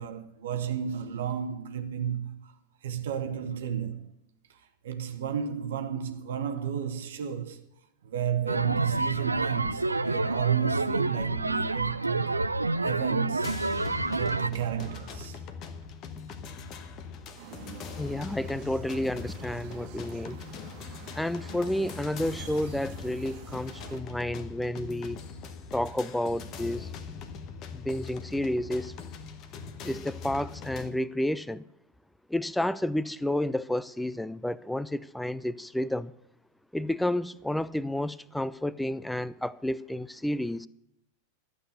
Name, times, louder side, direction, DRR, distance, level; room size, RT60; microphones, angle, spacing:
voice 1, 0.0-2.5 2.8-4.1 4.5-7.7 8.0-13.6 14.1-15.4 18.2-18.3, right 8 dB, 60° right, 1.0 m, -33 dB
sound 1, 8.5-14.5, right 3 dB, 80° right, 0.5 m, -28 dB
sound 2, 13.4-30.9, left 5 dB, 35° left, 1.1 m, -41 dB
sound 3, 17.3-24.0, right 9 dB, 45° right, 1.5 m, -49 dB
voice 2, 18.0-20.4 21.1-25.2 25.7-26.9 27.7-28.9 29.8-31.6 32.3-36.1 36.7-40.7, left 1 dB, 5° left, 0.4 m, -31 dB
12.5 x 8.4 x 6.6 m
figure-of-eight pair, 90°, 0 cm